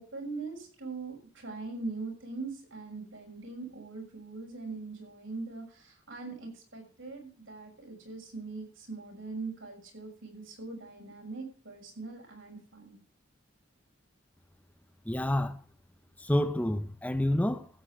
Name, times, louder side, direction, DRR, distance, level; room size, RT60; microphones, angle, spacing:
voice 1, 0.0-13.0, right 3 dB, 85° right, 6.5 m, -41 dB
voice 2, 15.1-15.6 16.2-17.7, left 1 dB, 10° left, 0.7 m, -28 dB
15.5 x 8.5 x 4.8 m
head